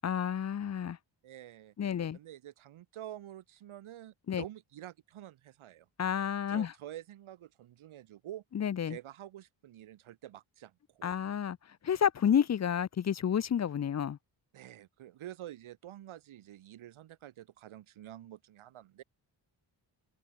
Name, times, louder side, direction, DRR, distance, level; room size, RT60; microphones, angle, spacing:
voice 1, 0.0-1.0 1.8-2.2 4.3-4.4 6.0-6.7 8.5-9.0 11.0-14.2, left 8 dB, 35° left, 0.6 m, -30 dB
voice 2, 1.2-1.7 2.1-5.9 6.5-8.4 8.9-11.1 14.5-19.0, right 12 dB, 85° right, 1.6 m, -48 dB
cardioid pair, 65°, 48 cm